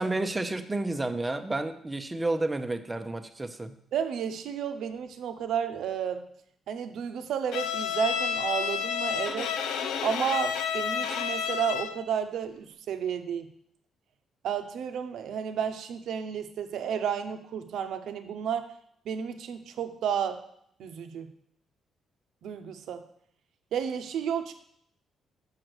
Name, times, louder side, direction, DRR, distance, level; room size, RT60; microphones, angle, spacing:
voice 1, 0.0-3.7, right 2 dB, 15° right, 7 dB, 0.7 m, -30 dB
voice 2, 3.9-6.2 6.7-9.5 10.0-13.5 14.4-18.7 19.0-20.4 20.8-21.3 22.4-23.0 23.7-24.5, right 8 dB, 75° right, 8 dB, 0.8 m, -32 dB
Bowed string instrument, 7.5-12.1, left 7 dB, 90° left, 0.6 m, -30 dB
6.4 x 5.7 x 6.1 m, 0.69 s
cardioid pair, 90°, 0 cm